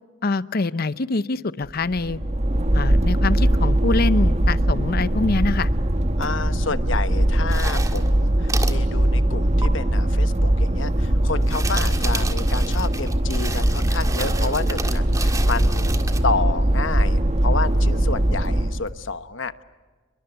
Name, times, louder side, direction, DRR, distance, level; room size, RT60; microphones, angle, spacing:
voice 1, 0.2-2.2 2.7-5.7, left 3 dB, 50° left, 16 dB, 0.7 m, -24 dB
sound 1, 1.6-18.9, right 1 dB, 35° right, 1.3 m, -21 dB
voice 2, 6.2-19.6, left 4 dB, 75° left, 12 dB, 1.1 m, -30 dB
sound 2, 7.5-8.1 8.5-8.8 9.6-9.7 11.3-16.2, right 3 dB, 15° right, 1.8 m, -32 dB
30.0 x 22.5 x 8.0 m, 1.4 s
head